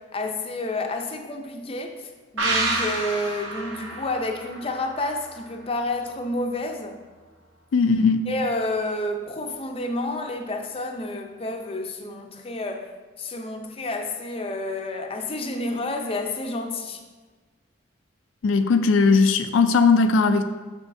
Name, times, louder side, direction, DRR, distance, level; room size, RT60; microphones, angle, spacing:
voice 1, 0.0-7.0 8.3-12.9 13.2-17.0, left 2 dB, 30° left, 4 dB, 0.5 m, -30 dB
sound 1, 2.4-5.8 6.1-6.2, right 2 dB, 85° right, 1.2 m, -29 dB
voice 2, 7.7-8.3 18.4-20.4, left 4 dB, 85° left, 9 dB, 0.4 m, -18 dB
7.2 x 6.3 x 2.6 m, 1.3 s
head